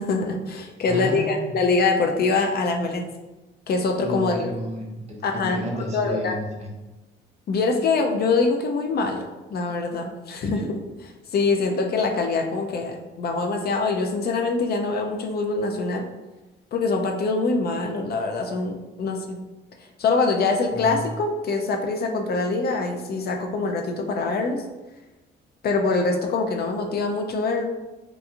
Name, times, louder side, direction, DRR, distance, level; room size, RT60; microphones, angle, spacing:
voice 1, 0.0-3.1 3.7-4.5 5.2-5.6 5.9-6.3 7.5-10.8 11.3-16.0 16.7-19.4 20.0-24.6 25.6-27.7, left 3 dB, 55° left, 3 dB, 0.4 m, -24 dB
voice 2, 0.9-1.6 4.0-6.7 10.5-10.7 20.7-21.0, right 1 dB, 35° right, -2 dB, 0.7 m, -32 dB
2.9 x 2.4 x 2.3 m, 1.1 s
cardioid pair, 90°, 20 cm